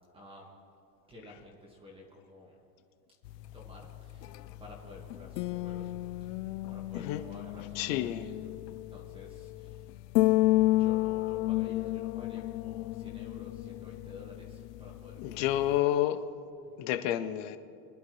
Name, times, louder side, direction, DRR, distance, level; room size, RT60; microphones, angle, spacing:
voice 1, 0.1-0.5 1.1-2.7 3.5-8.5 8.9-9.9 10.8-15.9 16.6-16.8, left 2 dB, 10° right, -2 dB, 1.7 m, -52 dB
sound 1, 3.2-15.8, left 17 dB, 75° left, 0.6 m, -32 dB
voice 2, 7.8-8.3 15.2-16.2 16.8-17.6, left 12 dB, 30° left, 10 dB, 0.4 m, -29 dB
24.5 x 11.0 x 3.1 m, 2.5 s
supercardioid pair, 160°, 48 cm